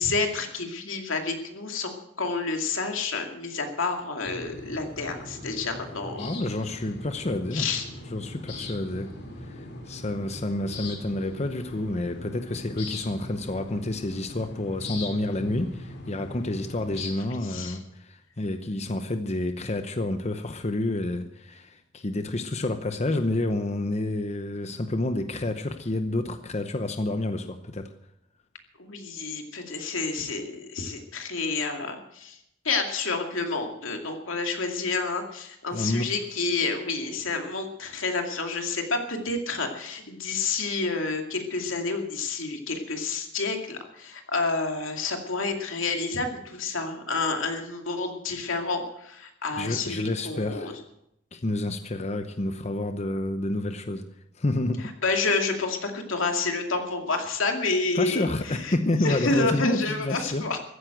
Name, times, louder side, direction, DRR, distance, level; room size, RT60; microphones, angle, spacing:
voice 1, 0.0-6.3 7.5-7.9 17.2-17.8 28.8-32.4 32.6-50.7 55.0-58.8 59.0-60.6, left 3 dB, 90° left, 4 dB, 2.4 m, -29 dB
sound 1, 4.2-17.1, left 2 dB, 60° left, 2.6 m, -40 dB
voice 2, 6.2-7.7 8.1-9.1 9.4-27.9 35.7-36.1 49.6-50.8 51.3-54.0 54.4-54.9 57.9-60.5, left 2 dB, 35° left, 8 dB, 0.8 m, -29 dB
15.0 x 9.7 x 7.9 m, 0.79 s
head